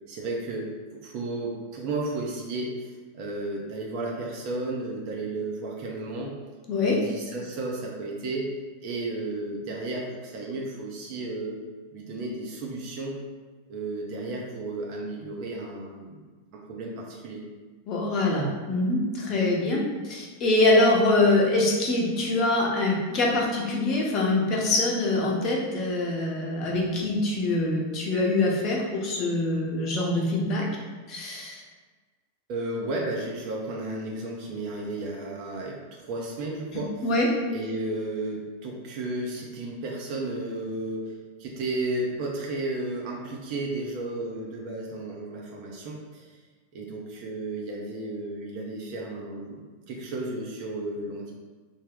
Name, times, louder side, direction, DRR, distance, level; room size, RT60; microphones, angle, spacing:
voice 1, 0.1-0.7 1.0-2.8 3.1-6.4 6.8-8.5 8.8-11.6 11.9-13.2 13.7-16.2 16.5-17.4 32.5-37.0 37.5-41.1 41.4-46.4 46.7-51.3, right 2 dB, 45° right, -2 dB, 0.5 m, -33 dB
voice 2, 6.7-7.0 17.9-30.7 31.1-31.6 37.0-37.3, left 2 dB, 35° left, -2 dB, 0.8 m, -24 dB
3.4 x 2.2 x 3.5 m, 1.4 s
figure-of-eight pair, 90°, 0 cm